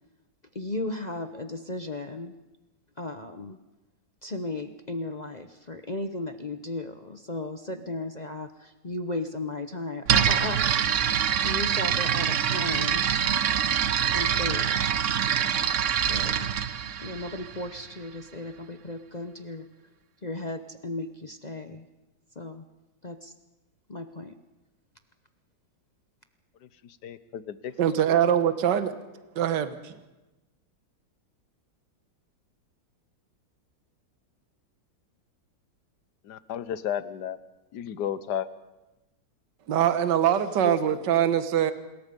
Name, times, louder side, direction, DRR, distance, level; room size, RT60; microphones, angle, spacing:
voice 1, 0.5-2.3 3.0-3.6 4.2-10.6 11.4-13.1 14.1-14.9 16.0-16.5 17.0-19.7 20.2-21.9 22.4-22.6 23.0-23.3 23.9-24.3 40.6-40.7, left 2 dB, 40° left, 8 dB, 0.6 m, -35 dB
sound 1, 10.1-17.9, right 8 dB, 55° right, 1.0 m, -25 dB
voice 2, 27.0-27.6 28.1-28.2 36.2-37.4 37.7-38.5, left 9 dB, 70° left, 14 dB, 1.5 m, -32 dB
voice 3, 27.8-28.9 29.4-29.9 39.7-41.7, right 10 dB, 75° right, 11 dB, 1.7 m, -23 dB
26.5 x 21.5 x 5.3 m, 1.1 s
omnidirectional pair, 2.0 m